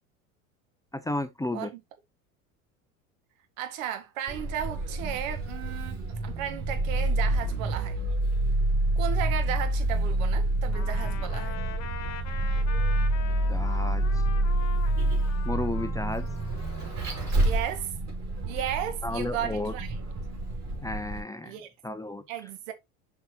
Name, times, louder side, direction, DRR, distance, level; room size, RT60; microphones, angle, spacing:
voice 1, 0.9-1.7 13.5-14.2 15.4-16.3 19.0-19.7 20.8-21.6 21.8-22.2, left 2 dB, 10° left, 0.7 m, -33 dB
voice 2, 3.6-8.0 9.0-11.6 17.4-17.9 18.5-19.9 21.4-21.7 22.3-22.7, right 10 dB, 70° right, 1.9 m, -34 dB
Vehicle, 4.3-21.2, right 1 dB, 40° right, 4.3 m, -28 dB
Trumpet, 10.7-17.8, left 8 dB, 40° left, 1.9 m, -43 dB
6.8 x 5.7 x 2.9 m
hypercardioid pair, 80°, 42 cm